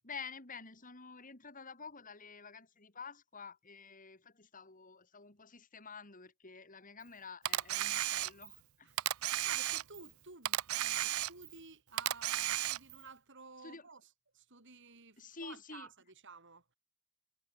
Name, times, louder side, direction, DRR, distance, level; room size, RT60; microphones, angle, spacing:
voice 1, 0.0-8.9 13.6-13.9 15.2-15.9, left 5 dB, 40° left, 3.3 m, -50 dB
Camera, 7.4-8.6 9.0-10.1 10.4-11.6 12.0-13.0, right 13 dB, 85° right, 0.6 m, -34 dB
voice 2, 8.8-14.0 14.3-15.9 16.2-16.6, right 4 dB, 60° right, 7.3 m, -54 dB
head